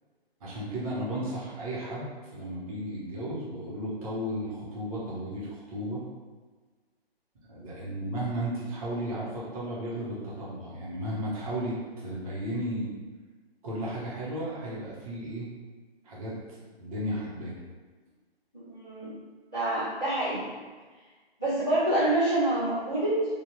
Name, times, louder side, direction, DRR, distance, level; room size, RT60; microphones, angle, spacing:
voice 1, 0.4-2.1 2.3-6.0 7.5-12.9 13.6-15.5 16.0-16.4 16.8-17.6, equal, 35° right, -7 dB, 1.0 m, -34 dB
voice 2, 18.5-19.1 19.5-20.5 21.4-23.3, right 1 dB, 5° left, -19 dB, 0.3 m, -27 dB
3.4 x 2.5 x 2.8 m, 1.4 s
figure-of-eight pair, 135°, 31 cm